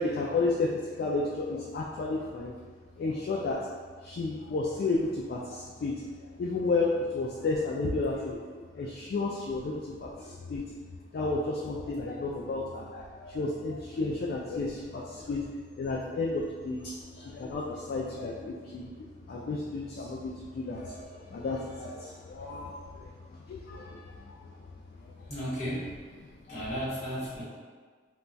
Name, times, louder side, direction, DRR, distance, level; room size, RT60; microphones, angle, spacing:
voice 1, 0.0-2.5 3.0-3.6 4.0-5.9 6.4-8.5 8.7-10.6 11.1-15.5 15.8-18.9 19.3-23.1 23.5-24.4 25.0-25.1 26.5-26.6, left 3 dB, 55° left, -3 dB, 0.3 m, -32 dB
voice 2, 25.3-26.0 26.5-27.4, equal, 40° left, -10 dB, 1.3 m, -34 dB
2.2 x 2.2 x 3.9 m, 1.5 s
head